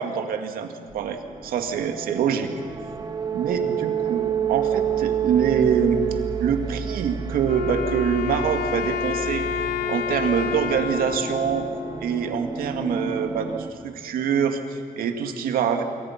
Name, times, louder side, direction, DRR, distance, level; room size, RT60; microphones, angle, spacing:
voice 1, 0.0-2.5 3.3-6.0 6.4-9.5 9.9-11.7 12.0-15.8, right 7 dB, 75° right, 6 dB, 2.1 m, -25 dB
sound 1, 0.9-13.7, right 8 dB, 25° right, 1.4 m, -29 dB
Wind instrument woodwind instrument, 7.4-12.6, left 8 dB, 80° left, 1.0 m, -29 dB
26.5 x 24.5 x 5.9 m, 2.3 s
cardioid pair, 165°, 15 cm